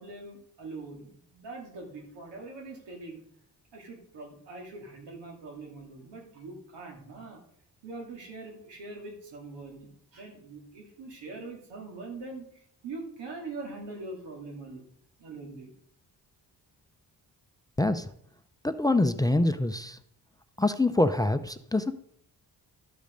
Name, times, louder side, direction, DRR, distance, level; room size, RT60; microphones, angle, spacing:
voice 1, 0.0-3.2 3.7-7.4 7.8-12.4 12.8-14.8 15.2-15.7, right 3 dB, 85° right, 0 dB, 2.6 m, -42 dB
voice 2, 17.8-18.1 18.6-20.0 20.6-21.9, left 2 dB, 10° left, 11 dB, 0.5 m, -25 dB
12.5 x 5.1 x 5.2 m, 0.67 s
cardioid pair, 65°, 41 cm